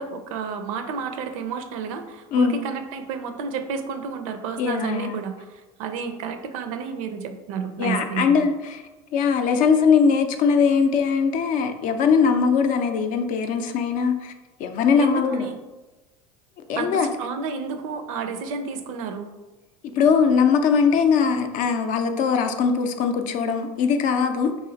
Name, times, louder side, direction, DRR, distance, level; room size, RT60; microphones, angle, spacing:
voice 1, 0.0-8.5 14.9-15.6 16.7-19.3, right 5 dB, 80° right, 7 dB, 0.5 m, -31 dB
voice 2, 2.3-2.6 4.6-5.2 7.8-8.8 9.1-14.3 14.6-15.5 16.7-17.1 20.0-24.5, left 6 dB, 50° left, 7 dB, 0.4 m, -21 dB
3.0 x 2.5 x 3.9 m, 1.1 s
supercardioid pair, 105°, 17 cm